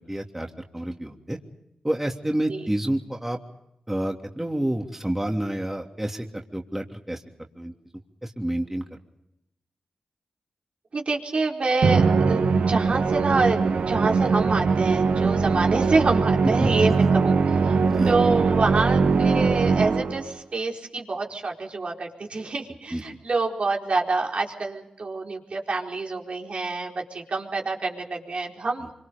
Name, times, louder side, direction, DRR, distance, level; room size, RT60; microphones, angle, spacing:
voice 1, 0.1-1.4 1.8-3.4 3.9-6.3 6.5-7.2 7.6-7.7 8.2-9.0 16.4-16.9 17.8-18.1 22.9-23.0, right 1 dB, 15° right, 2 dB, 3.1 m, -29 dB
voice 2, 10.9-17.8 18.1-28.9, right 3 dB, 65° right, 0 dB, 4.5 m, -27 dB
Musical instrument, 11.8-20.3, right 4 dB, 85° right, 1.5 m, -21 dB
25.5 x 25.0 x 5.4 m, 0.83 s
cardioid pair, 40°, 2 cm